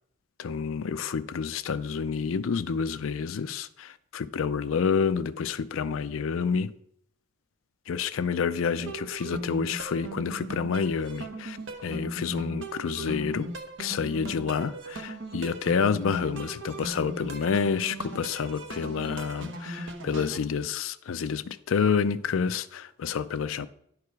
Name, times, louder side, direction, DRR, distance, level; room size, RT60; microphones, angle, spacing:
voice 1, 0.4-6.7 7.9-11.6 11.8-13.5 13.8-23.7, left 6 dB, 85° left, 0.4 m, -29 dB
sound 1, 8.7-20.4, right 2 dB, 70° right, 1.0 m, -38 dB
10.5 x 4.8 x 4.7 m
head